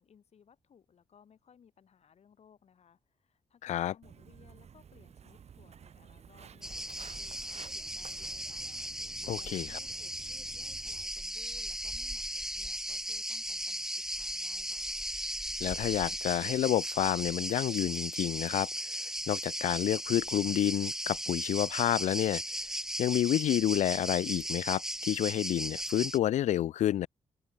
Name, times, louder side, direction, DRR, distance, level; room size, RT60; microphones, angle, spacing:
voice 1, 0.0-14.8, left 7 dB, 65° left, 7.5 m, -62 dB
voice 2, 3.6-3.9 9.3-9.8 15.6-18.7 19.3-22.4 23.0-27.1, left 12 dB, 85° left, 0.4 m, -29 dB
Walk footsteps, 4.0-11.0, right 7 dB, 65° right, 3.6 m, -53 dB
sound 1, 6.6-26.2, right 1 dB, 5° right, 0.9 m, -37 dB
open air
cardioid pair, 90°, 12 cm